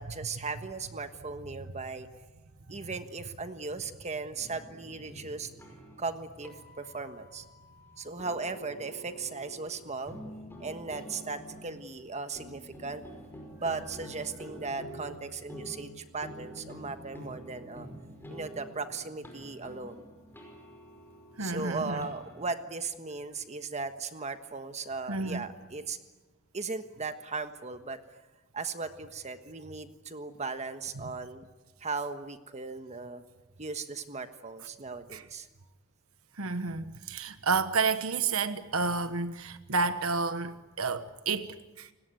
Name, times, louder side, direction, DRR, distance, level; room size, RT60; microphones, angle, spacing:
voice 1, 0.0-2.1 2.7-5.5 6.0-7.4 8.0-10.2 10.6-13.0 13.6-17.9 18.3-20.1 21.4-26.0 26.5-28.0 28.5-31.5 31.8-33.2 33.6-35.5, right 4 dB, 35° right, 1.4 m, -37 dB
sound 1, 4.3-22.5, equal, 10° left, 5.2 m, -48 dB
voice 2, 21.4-22.1 25.1-25.5 31.0-31.1 35.1-35.2 36.4-41.9, right 4 dB, 80° right, 1.2 m, -30 dB
30.0 x 18.0 x 9.3 m
head